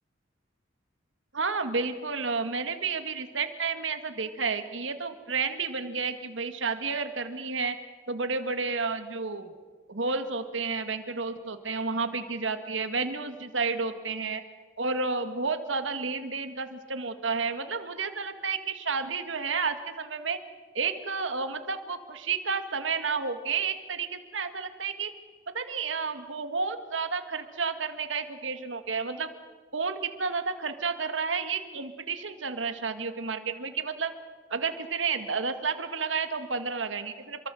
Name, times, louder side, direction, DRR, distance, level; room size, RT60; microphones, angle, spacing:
voice 1, 1.3-7.8 8.1-9.5 9.9-14.4 14.8-20.4 20.7-25.1 25.5-29.3 29.7-34.1 34.5-37.5, right 4 dB, 85° right, 8 dB, 2.0 m, -31 dB
28.0 x 23.5 x 7.7 m, 1.5 s
head